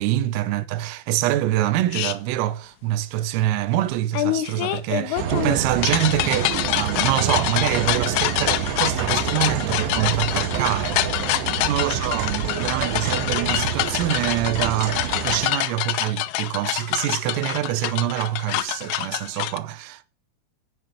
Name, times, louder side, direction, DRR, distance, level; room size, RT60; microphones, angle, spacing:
voice 1, 0.0-11.3 11.6-20.0, right 13 dB, 90° right, 3.6 m, -25 dB
sound 1, 1.9-2.2 4.1-19.6, left 16 dB, 80° left, 3.3 m, -26 dB
sound 2, 5.2-15.5, right 8 dB, 65° right, 3.6 m, -28 dB
14.0 x 7.0 x 7.9 m
omnidirectional pair, 5.8 m